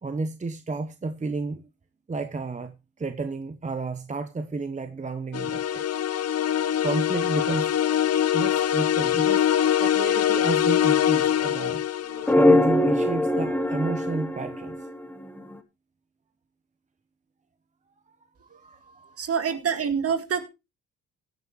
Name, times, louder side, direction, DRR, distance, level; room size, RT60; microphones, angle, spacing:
voice 1, 0.0-1.7 2.1-5.9 6.8-7.7 8.3-9.5 9.8-11.8 12.3-14.8 18.4-19.2, right 3 dB, 25° right, 1.0 m, -31 dB
sound 1, 5.3-12.3, left 10 dB, 55° left, 0.9 m, -23 dB
sound 2, 12.2-15.5, left 1 dB, 5° left, 1.4 m, -22 dB
voice 2, 19.2-20.4, right 7 dB, 50° right, 2.2 m, -26 dB
16.5 x 9.5 x 3.2 m
cardioid pair, 90°, 30 cm